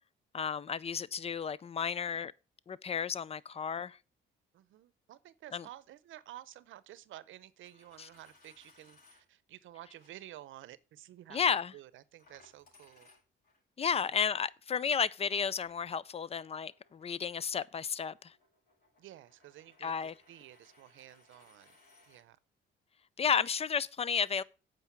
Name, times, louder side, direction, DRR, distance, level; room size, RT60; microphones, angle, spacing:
voice 1, 0.3-2.3 2.7-4.0 5.5-5.6 8.0-8.1 11.3-11.7 13.8-18.3 19.8-20.1 23.2-24.4, left 6 dB, 30° left, 0.5 m, -32 dB
voice 2, 4.5-13.1 14.0-14.1 19.0-19.9 20.3-21.8 22.1-22.4, right 13 dB, 80° right, 0.7 m, -52 dB
Coin (dropping), 7.5-9.2 9.9-10.1 12.2-13.6 15.5-22.2, left 2 dB, 50° left, 5.4 m, -65 dB
8.1 x 5.3 x 7.1 m
cardioid pair, 90°, 20 cm